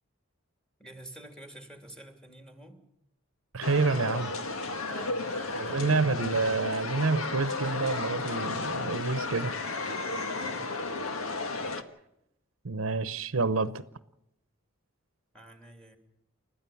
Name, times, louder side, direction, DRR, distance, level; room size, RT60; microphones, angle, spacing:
voice 1, 0.8-2.8 4.9-6.2 10.3-10.9 15.3-16.0, right 2 dB, 5° left, 3.1 m, -48 dB
voice 2, 3.5-4.3 5.6-9.5 12.6-13.7, right 3 dB, 75° right, 0.9 m, -28 dB
sound 1, 3.6-11.8, left 3 dB, 90° left, 1.7 m, -33 dB
29.5 x 13.5 x 7.2 m
head